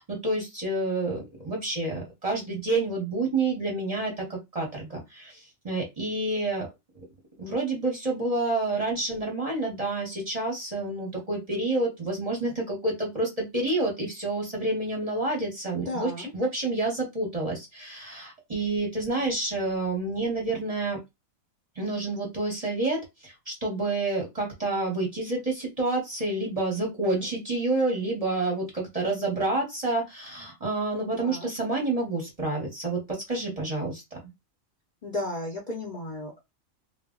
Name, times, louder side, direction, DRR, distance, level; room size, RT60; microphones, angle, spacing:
voice 1, 0.0-5.3 5.6-6.7 7.4-16.1 16.3-21.0 21.8-34.0, right 2 dB, 35° right, -1 dB, 0.8 m, -29 dB
voice 2, 15.7-16.3 31.2-31.5 35.0-36.5, left 1 dB, 45° left, -3 dB, 0.6 m, -34 dB
2.3 x 2.0 x 3.6 m, 0.21 s
omnidirectional pair, 1.4 m